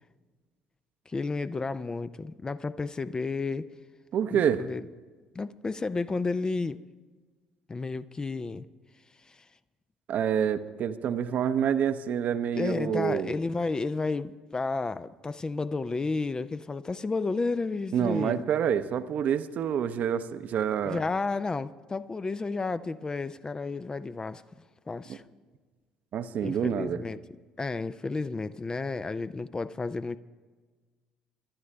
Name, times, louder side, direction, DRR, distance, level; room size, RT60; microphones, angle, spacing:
voice 1, 1.1-3.7 4.3-4.8 5.3-6.8 7.7-8.6 9.3-9.4 12.5-18.4 20.8-24.4 24.9-25.2 26.4-27.2 27.6-30.2, left 3 dB, 20° left, 0.4 m, -32 dB
voice 2, 4.1-4.7 10.1-13.3 17.9-21.0 25.1-25.2 26.1-27.0, right 8 dB, 50° right, 0.7 m, -27 dB
23.0 x 12.0 x 3.3 m
figure-of-eight pair, 55°, 4 cm